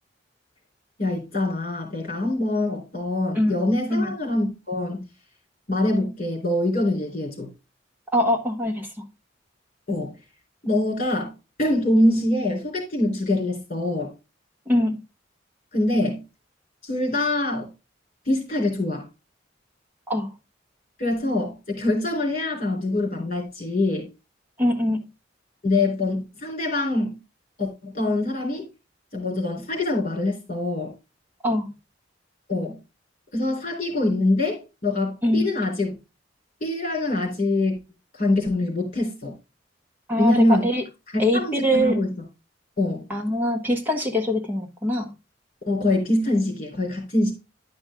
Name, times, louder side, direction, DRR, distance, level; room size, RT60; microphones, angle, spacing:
voice 1, 1.0-5.1 5.7-7.5 9.9-10.1 10.6-11.3 11.6-14.1 15.7-16.2 16.8-17.7 18.3-19.1 21.0-24.1 25.6-27.2 27.6-28.7 29.1-30.9 32.5-32.8 33.3-35.9 36.6-37.8 38.1-39.3 40.2-40.7 41.1-42.1 42.8-43.1 45.7-47.3, left 1 dB, 40° left, 1 dB, 3.6 m, -24 dB
voice 2, 8.1-8.9 14.7-15.0 20.1-20.3 24.6-25.0 31.4-31.7 35.2-35.5 40.1-40.8 41.2-42.0 43.1-45.1, left 1 dB, 10° right, 3 dB, 1.5 m, -23 dB
10.5 x 5.4 x 3.6 m, 0.27 s
head